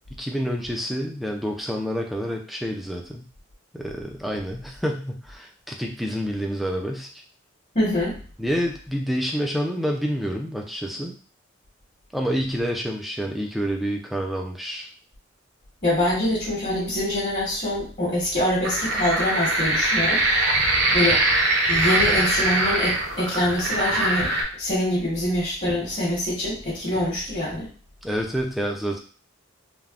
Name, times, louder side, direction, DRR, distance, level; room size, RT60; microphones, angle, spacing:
voice 1, 0.1-3.2 3.7-7.1 8.4-11.2 12.1-14.9 27.0-27.1 28.0-29.0, equal, ahead, 1 dB, 0.3 m, -28 dB
voice 2, 7.7-8.2 15.8-20.2 20.9-21.2 21.7-24.3 24.6-27.7, left 1 dB, 40° left, -7 dB, 1.0 m, -24 dB
sound 1, 18.6-24.4, right 2 dB, 60° right, 0.7 m, -22 dB
3.3 x 2.1 x 2.4 m, 0.40 s
head